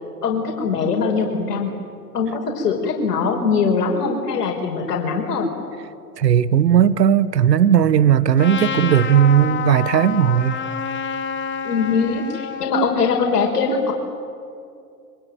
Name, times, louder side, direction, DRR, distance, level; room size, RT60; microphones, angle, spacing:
voice 1, 0.2-1.7 2.1-5.5 11.6-13.9, left 5 dB, 75° left, 1 dB, 5.1 m, -21 dB
voice 2, 6.2-10.6, right 9 dB, 85° right, 15 dB, 1.2 m, -16 dB
Trumpet, 8.4-12.7, left 7 dB, 25° left, 2.2 m, -28 dB
26.5 x 24.5 x 9.3 m, 2.4 s
hypercardioid pair, 115°, 48 cm